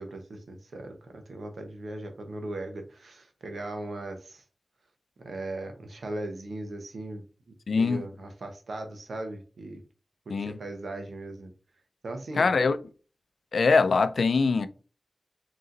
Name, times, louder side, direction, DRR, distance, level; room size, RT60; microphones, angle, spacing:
voice 1, 0.0-4.4 5.2-7.2 7.7-9.8 10.3-11.5 12.0-12.5, right 2 dB, 90° right, 0.9 m, -38 dB
voice 2, 7.7-8.0 10.3-10.6 12.4-12.8 13.5-14.7, left 4 dB, 90° left, 0.4 m, -23 dB
3.9 x 3.0 x 3.9 m
cardioid pair, 45°, 0 cm